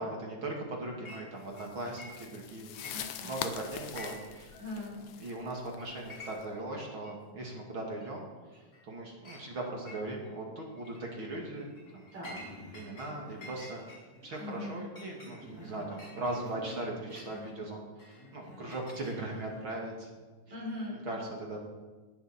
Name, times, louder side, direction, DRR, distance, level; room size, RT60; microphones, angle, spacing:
voice 1, 0.0-2.9 3.2-4.5 5.2-8.3 8.8-12.1 12.7-13.8 14.2-20.1 21.0-21.6, right 2 dB, 40° right, -1 dB, 2.7 m, -39 dB
Chink clink, 1.0-1.3 1.5-2.4 2.7-3.5 3.8-4.4 4.7-4.8 5.4-5.5 5.8-6.6 7.0-7.1 8.0-8.1 8.5-8.9 9.2-9.4 9.9-10.3 10.8-11.0 11.5-13.1 13.4-17.3 18.0-19.5, left 2 dB, 20° left, 5.1 m, -50 dB
sound 1, 1.5-6.4, left 10 dB, 70° left, 1.9 m, -43 dB
voice 2, 2.9-3.3 4.5-5.0 12.1-12.4 14.4-14.8 20.5-21.0, left 1 dB, 55° right, -5 dB, 6.0 m, -40 dB
Human voice, 12.2-12.9 13.2-13.7 14.2-14.9 15.2-15.9 16.2-16.9 17.2-17.6 18.2-18.7 19.2-19.7, left 1 dB, 50° left, 3.3 m, -50 dB
19.0 x 13.5 x 4.4 m, 1.3 s
omnidirectional pair, 3.9 m